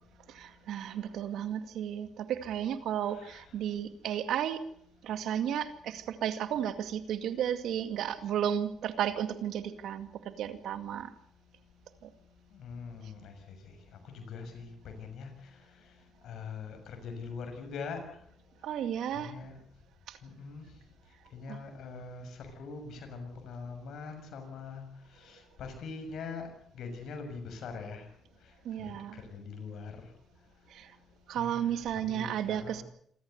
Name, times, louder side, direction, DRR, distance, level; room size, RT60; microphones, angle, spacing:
voice 1, 0.3-4.7 5.0-11.1 12.0-12.1 18.6-19.3 20.1-20.2 21.5-21.6 28.6-29.2 30.7-30.9 31.3-32.8, right 10 dB, 80° right, 10 dB, 2.1 m, -33 dB
voice 2, 3.1-3.4 12.5-13.8 14.0-16.0 16.2-18.2 19.1-19.5 20.2-20.7 21.3-28.1 28.8-30.1 31.4-32.8, left 5 dB, 75° left, 6 dB, 6.6 m, -43 dB
27.0 x 14.5 x 8.1 m, 0.68 s
cardioid pair, 90°, 0 cm